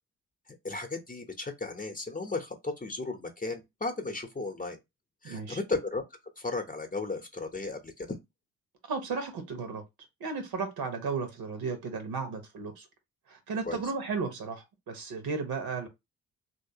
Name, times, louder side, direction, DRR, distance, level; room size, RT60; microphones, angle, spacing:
voice 1, 0.5-4.8 5.2-6.0 6.4-8.2 13.7-13.8, left 3 dB, 20° left, 0.9 m, -35 dB
voice 2, 5.2-5.6 8.9-9.8 10.2-12.9 13.3-15.9, right 4 dB, 55° right, 1.2 m, -34 dB
3.1 x 2.8 x 2.8 m
figure-of-eight pair, 40°, 45 cm